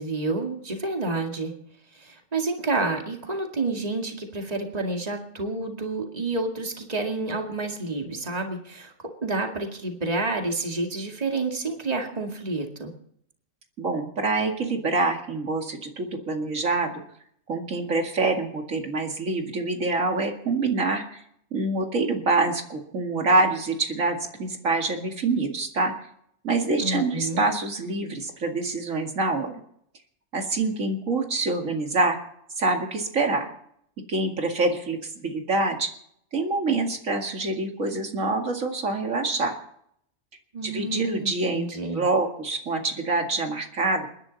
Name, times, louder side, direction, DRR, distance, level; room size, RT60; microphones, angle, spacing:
voice 1, 0.0-1.5 1.9-8.9 9.2-12.9 26.8-27.5 40.5-42.0, right 3 dB, 30° right, 2 dB, 2.3 m, -29 dB
voice 2, 13.8-17.0 17.5-21.2 21.5-25.9 26.4-29.6 30.3-32.2 32.6-33.5 34.1-35.9 36.3-39.5 40.6-41.7 41.9-44.1, right 3 dB, 80° right, 3 dB, 2.5 m, -26 dB
28.5 x 11.0 x 4.1 m, 0.70 s
omnidirectional pair, 1.3 m